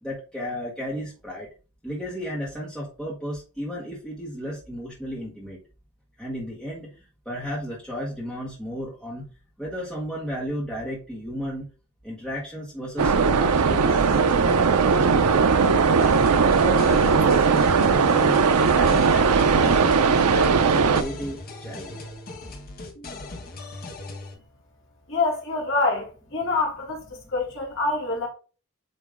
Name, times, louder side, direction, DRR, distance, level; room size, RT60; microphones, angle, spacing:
voice 1, 0.0-1.5 1.8-5.6 6.2-9.3 9.6-11.7 12.0-16.0 16.5-18.4 18.7-22.1, equal, 5° left, 1.5 m, -34 dB
sound 1, 13.0-21.0, right 5 dB, 85° right, 0.6 m, -19 dB
sound 2, 16.0-24.3, left 2 dB, 40° left, 1.2 m, -39 dB
voice 2, 25.1-27.0 27.3-28.3, left 3 dB, 60° left, 2.4 m, -25 dB
8.6 x 3.0 x 3.6 m
head